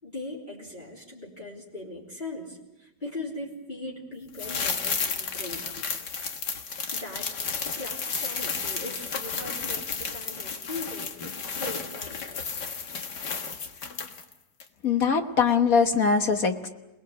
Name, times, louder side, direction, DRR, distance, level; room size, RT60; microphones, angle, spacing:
voice 1, 0.0-6.1 6.9-7.4 7.7-12.6, left 2 dB, 25° left, -5 dB, 3.8 m, -40 dB
sound 1, 4.3-14.3 14.6-14.7, left 5 dB, 80° left, 2.2 m, -32 dB
voice 2, 14.8-16.7, left 5 dB, 60° left, 6 dB, 1.7 m, -22 dB
28.0 x 19.5 x 8.0 m, 1.0 s
omnidirectional pair, 1.8 m